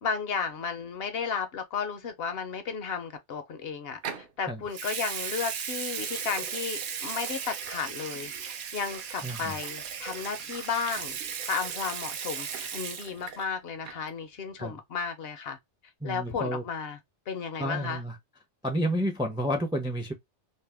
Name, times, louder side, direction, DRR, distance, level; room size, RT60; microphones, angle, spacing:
voice 1, 0.0-8.3 8.7-11.2 11.5-15.6 16.0-17.0 17.3-18.0, left 6 dB, 65° left, 0.7 m, -33 dB
Water tap faucet / Sink (filling or washing) / Liquid, 4.0-4.3 4.7-13.5 13.7-14.1, right 7 dB, 60° right, 0.6 m, -36 dB
voice 2, 9.2-9.6 14.6-14.8 16.0-16.6 17.6-18.2 18.6-20.1, equal, 5° right, 0.3 m, -30 dB
2.7 x 2.1 x 3.2 m
omnidirectional pair, 1.2 m